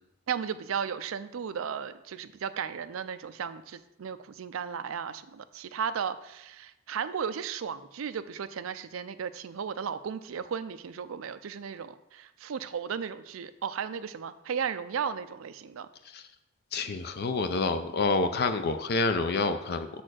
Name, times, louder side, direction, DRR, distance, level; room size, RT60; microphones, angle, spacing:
voice 1, 0.3-15.9, right 7 dB, 80° right, 12 dB, 0.4 m, -35 dB
voice 2, 16.7-19.9, left 3 dB, 50° left, 9 dB, 0.4 m, -28 dB
6.6 x 4.3 x 6.2 m, 0.93 s
head